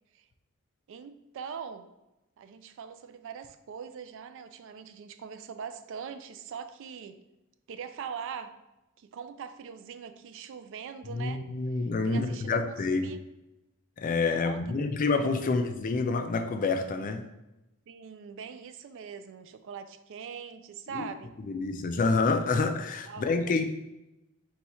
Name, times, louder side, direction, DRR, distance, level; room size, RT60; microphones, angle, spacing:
voice 1, 0.9-1.9 2.4-7.2 7.7-8.6 9.0-11.4 12.0-13.2 14.4-14.6 15.4-15.6 17.9-21.3 23.1-23.6, right 7 dB, 65° right, 10 dB, 0.3 m, -42 dB
voice 2, 11.1-13.1 14.0-17.2 20.9-21.1 21.4-23.6, left 3 dB, 40° left, 7 dB, 0.4 m, -28 dB
4.1 x 2.4 x 4.3 m, 0.94 s
head